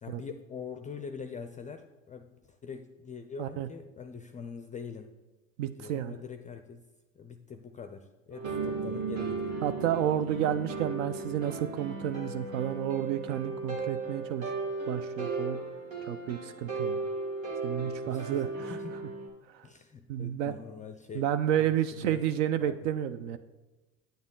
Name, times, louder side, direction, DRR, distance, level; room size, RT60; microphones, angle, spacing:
voice 1, 0.0-5.1 5.8-6.8 7.2-9.6 18.0-18.4 18.7-19.2 19.6-21.3 21.6-22.3 22.6-22.8, left 6 dB, 20° left, 8 dB, 0.4 m, -43 dB
voice 2, 5.6-6.2 9.6-14.5 14.9-15.6 16.1-17.0 17.6-18.8 19.5-19.6 20.1-20.5 21.2-23.4, right 10 dB, 65° right, 11 dB, 0.5 m, -31 dB
sound 1, 8.3-19.3, right 3 dB, 90° right, 1.7 m, -37 dB
sound 2, 8.4-12.4, right 8 dB, 25° right, 0.7 m, -39 dB
8.9 x 7.2 x 3.7 m, 1.1 s
hypercardioid pair, 75°, 39 cm